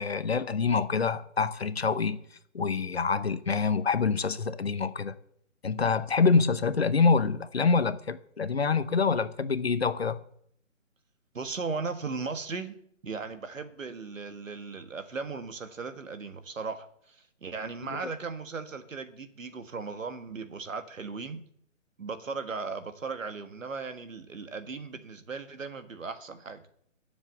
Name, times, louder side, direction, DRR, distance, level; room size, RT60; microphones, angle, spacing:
voice 1, 0.0-2.2 2.5-5.2 5.6-10.2 17.9-18.0, left 5 dB, 55° left, 0.9 m, -26 dB
voice 2, 11.3-12.7 13.0-21.4 22.0-26.6, right 4 dB, 80° right, 1.7 m, -37 dB
10.0 x 7.3 x 7.5 m
hypercardioid pair, 175°, 39 cm